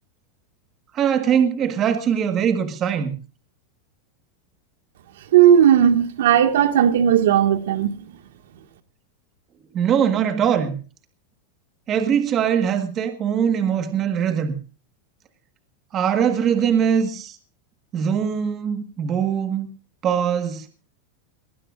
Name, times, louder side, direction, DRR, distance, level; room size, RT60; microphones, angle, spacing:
voice 1, 0.9-3.1 9.7-10.8 11.9-14.6 15.9-17.4 17.9-19.7 20.0-20.7, right 8 dB, 25° right, 1.5 m, -21 dB
voice 2, 5.3-8.2, right 9 dB, 80° right, 1.9 m, -16 dB
21.0 x 20.0 x 2.5 m
supercardioid pair, 160°, 0 cm